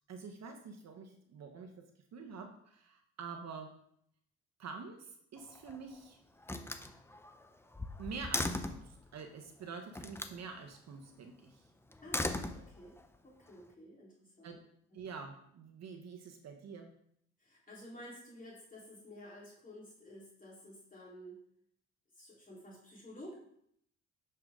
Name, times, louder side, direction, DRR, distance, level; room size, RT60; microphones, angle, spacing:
voice 1, 0.1-3.7 4.6-6.2 8.0-11.7 14.4-14.6 14.9-16.9, right 5 dB, 60° right, 4 dB, 1.2 m, -47 dB
Slam, 5.4-5.9 6.4-8.9 9.9-10.4 11.9-13.1, left 2 dB, 10° left, 0.7 m, -38 dB
voice 2, 12.0-13.0 13.2-14.6 14.9-15.0 17.4-21.4 22.1-23.3, equal, 25° left, -5 dB, 3.8 m, -52 dB
9.7 x 6.9 x 3.8 m, 0.69 s
cardioid pair, 90°, 30 cm